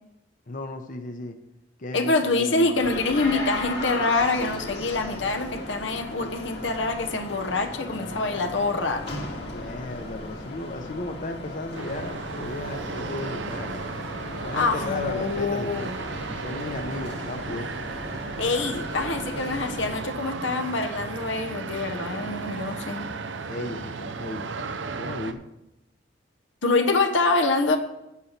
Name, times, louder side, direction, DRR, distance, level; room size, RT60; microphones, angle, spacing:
voice 1, 0.5-1.4 1.8-2.9 9.4-13.8 14.4-15.9 16.3-17.7 23.4-25.4, left 2 dB, 45° left, 6 dB, 0.8 m, -35 dB
voice 2, 1.9-9.1 14.5-15.9 18.4-23.1 26.6-27.8, left 3 dB, 85° left, 5 dB, 1.1 m, -25 dB
sound 1, 2.7-20.0, left 2 dB, 65° left, 2.1 m, -37 dB
sound 2, 11.7-25.3, right 4 dB, 85° right, 0.7 m, -35 dB
8.4 x 8.3 x 5.9 m, 0.90 s
head